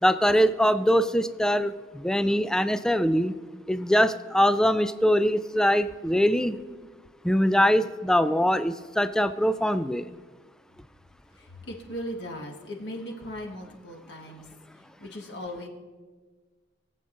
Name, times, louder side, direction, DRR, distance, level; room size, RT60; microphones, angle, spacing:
voice 1, 0.0-3.3 3.7-6.6 7.2-10.1, equal, 5° left, 12 dB, 0.3 m, -23 dB
voice 2, 11.4-14.5 15.0-15.7, equal, 70° left, 1 dB, 1.6 m, -38 dB
21.5 x 7.9 x 2.6 m, 1.4 s
head